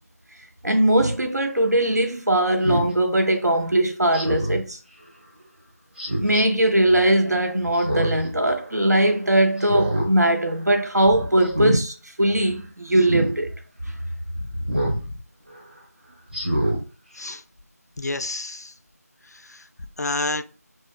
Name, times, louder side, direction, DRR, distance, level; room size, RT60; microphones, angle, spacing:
voice 1, 0.6-4.8 6.2-13.5, right 1 dB, 85° right, 0.7 m, -20 dB
Speech synthesizer, 1.0-1.2 2.6-2.9 4.1-4.6 6.0-6.4 7.7-8.3 8.7-8.8 9.6-10.1 10.5-10.8 11.4-11.8 13.0-13.3 14.7-15.0 15.5-15.6 16.3-16.8 17.3-17.4, right 1 dB, 35° right, 0.8 m, -25 dB
voice 2, 14.5-15.1 17.2-17.4 18.0-18.7 19.5-19.6 20.0-20.4, left 2 dB, 75° left, 0.4 m, -29 dB
2.4 x 2.1 x 3.4 m
figure-of-eight pair, 170°, 9 cm